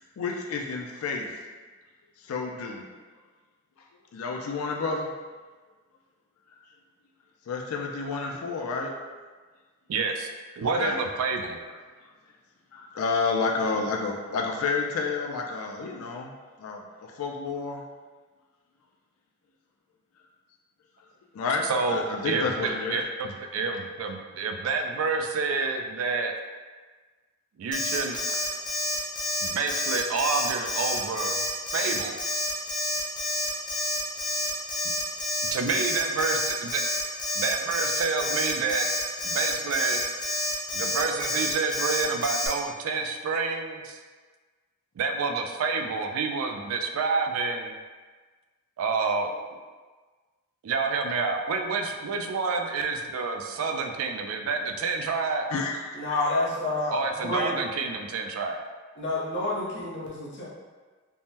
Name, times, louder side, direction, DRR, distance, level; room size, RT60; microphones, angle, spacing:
voice 1, 0.2-1.3 2.2-2.8 4.1-5.1 7.5-8.9 10.6-11.0 12.7-16.3 16.6-17.8 21.3-23.0 55.5-56.2, left 4 dB, 90° left, 1 dB, 0.4 m, -30 dB
voice 2, 9.9-10.3 10.6-11.6 21.6-26.3 27.6-28.4 29.4-31.4 31.7-32.2 35.5-36.8 37.4-38.9 39.2-40.0 40.7-44.0 45.0-47.8 48.8-49.3 50.6-55.5 56.9-58.6, right 4 dB, 75° right, 4 dB, 0.3 m, -28 dB
Alarm, 27.7-42.5, left 2 dB, 20° left, 0.6 m, -29 dB
voice 3, 56.0-57.0 57.2-57.5 59.0-60.5, left 2 dB, 55° left, -4 dB, 0.7 m, -28 dB
3.4 x 2.0 x 2.7 m, 1.4 s
head